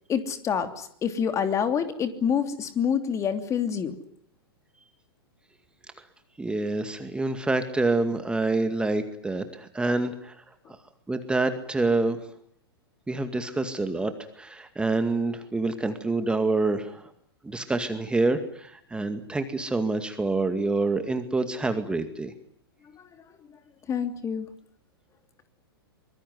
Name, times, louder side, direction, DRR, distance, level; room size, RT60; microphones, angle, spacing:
voice 1, 0.1-3.9 22.9-23.0 23.9-24.5, left 7 dB, 25° left, 9 dB, 3.0 m, -27 dB
voice 2, 6.4-10.4 11.1-12.2 13.1-17.1 17.4-22.3, right 3 dB, 5° right, 8 dB, 2.2 m, -27 dB
24.5 x 22.0 x 9.6 m, 0.66 s
hypercardioid pair, 110°, 13 cm